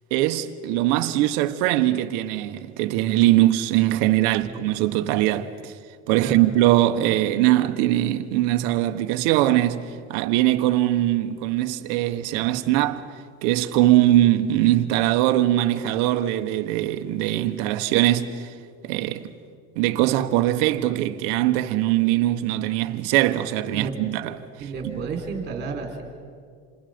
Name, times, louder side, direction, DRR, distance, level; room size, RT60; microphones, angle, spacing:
voice 1, 0.1-5.7 6.1-13.1 13.4-18.5 18.8-19.3 19.8-24.3 24.8-24.9, right 14 dB, 65° right, 1.3 m, -21 dB
voice 2, 24.6-26.0, right 5 dB, 35° right, 4.3 m, -32 dB
28.0 x 28.0 x 5.2 m
cardioid pair, 160°, 30 cm